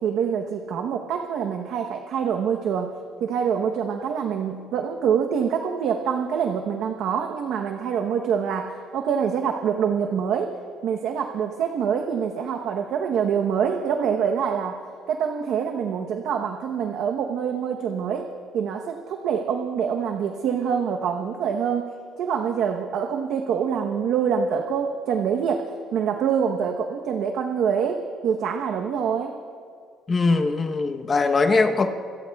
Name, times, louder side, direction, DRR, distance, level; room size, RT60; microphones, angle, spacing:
voice 1, 0.0-2.9 3.2-10.6 10.8-18.3 18.5-21.9 22.2-29.3, right 7 dB, 75° right, 3 dB, 0.9 m, -25 dB
voice 2, 30.1-31.9, left 3 dB, 30° left, 5 dB, 0.9 m, -21 dB
26.0 x 22.0 x 2.3 m, 2.2 s
cardioid pair, 115°, 0 cm